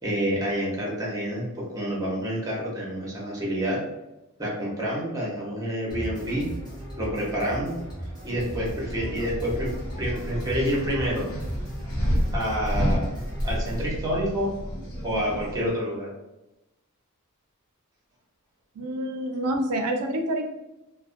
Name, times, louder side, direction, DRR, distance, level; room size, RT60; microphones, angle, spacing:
voice 1, 0.0-3.8 4.4-6.5 7.0-7.8 8.2-9.7 10.0-11.3 12.3-13.1 13.4-14.5 15.0-16.1, equal, 15° right, -4 dB, 0.8 m, -28 dB
sound 1, 5.9-13.9, right 1 dB, 20° left, 0.9 m, -37 dB
sound 2, 8.3-15.7, equal, 65° left, 0.6 m, -30 dB
voice 2, 18.8-20.5, right 1 dB, 85° right, 5 dB, 0.4 m, -27 dB
2.4 x 2.1 x 2.5 m, 0.97 s
head